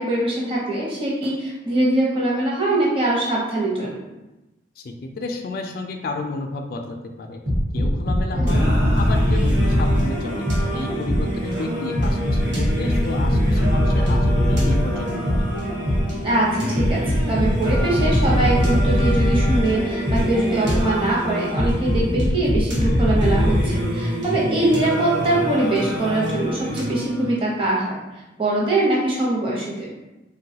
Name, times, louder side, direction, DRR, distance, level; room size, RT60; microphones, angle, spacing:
voice 1, 0.0-4.0 8.3-8.7 16.2-28.0 28.4-29.9, right 1 dB, 30° right, -5 dB, 0.8 m, -22 dB
voice 2, 4.8-7.4 7.7-8.6 9.0-10.5 10.7-15.5, left 3 dB, 50° left, 3 dB, 0.3 m, -31 dB
sound 1, 7.5-11.4 12.0-16.2 16.8-21.0 21.6-23.6, equal, 45° right, 1.2 m, -21 dB
Singing, 8.5-27.5, equal, 80° right, 1.0 m, -28 dB
3.6 x 2.3 x 2.7 m, 1.0 s
head